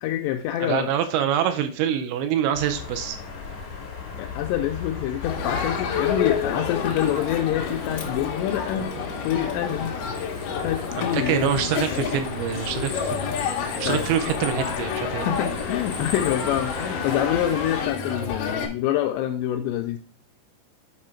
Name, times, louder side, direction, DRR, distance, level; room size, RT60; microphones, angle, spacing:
voice 1, 0.0-0.9 4.2-8.9 9.2-10.0 10.5-11.7 11.9-12.1 13.9-14.0 14.7-20.0, left 11 dB, 85° left, 5 dB, 2.4 m, -26 dB
voice 2, 0.6-3.2 11.0-13.3 13.8-15.3, right 9 dB, 80° right, 8 dB, 2.7 m, -25 dB
sound 1, 2.5-17.9, left 5 dB, 50° left, 2.9 m, -37 dB
Crowd, 5.2-18.7, left 6 dB, 70° left, 2.1 m, -29 dB
8.5 x 4.9 x 4.4 m, 0.40 s
omnidirectional pair, 5.4 m